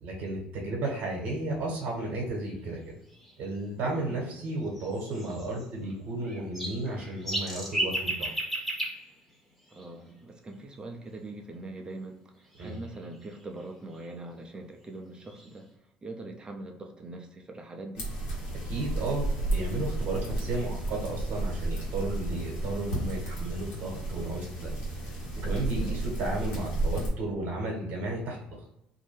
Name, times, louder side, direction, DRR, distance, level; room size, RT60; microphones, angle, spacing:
voice 1, 0.0-2.9 3.4-8.3 12.6-12.7 18.6-24.7 25.0-25.1 25.4-28.5, right 2 dB, 60° right, -2 dB, 1.1 m, -33 dB
sound 1, 2.8-2.9 3.1-3.3 4.7-5.9 6.2-10.1 12.4-14.1 14.8-14.9 15.2-15.6, right 1 dB, 5° left, 1.0 m, -35 dB
voice 2, 4.0-4.3 9.7-18.1 25.8-26.2, right 2 dB, 25° right, 3 dB, 0.6 m, -43 dB
sound 2, 18.0-27.1, right 2 dB, 70° left, 1.2 m, -32 dB
2.6 x 2.2 x 3.2 m, 0.79 s
supercardioid pair, 75°, 4 cm